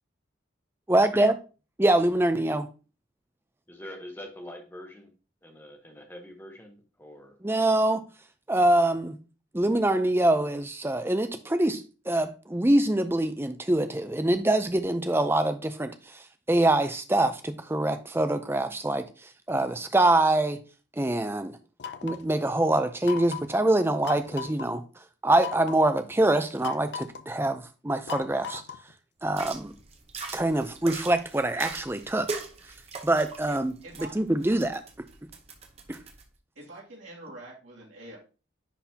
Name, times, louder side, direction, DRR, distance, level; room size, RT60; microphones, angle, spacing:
voice 1, 0.9-1.4 1.8-2.7 7.4-8.0 8.5-9.1 9.5-16.2 16.5-19.0 19.5-20.6 21.0-21.6 22.0-24.8 25.2-28.6 29.2-29.7 30.3-32.3 33.0-33.7 34.2-34.8 35.9-36.0, right 1 dB, 10° right, 0.5 m, -24 dB
voice 2, 3.7-5.1 5.4-7.3, left 1 dB, 10° left, 1.1 m, -44 dB
sound 1, 21.8-22.3 23.0-23.6 24.0-24.7 25.4-25.9 26.6-27.3 28.1-28.9, left 7 dB, 55° left, 0.5 m, -38 dB
sound 2, 29.3-36.2, right 3 dB, 30° right, 0.9 m, -41 dB
voice 3, 33.5-34.2 36.6-38.2, right 1 dB, 75° right, 2.5 m, -45 dB
10.0 x 4.0 x 2.8 m
head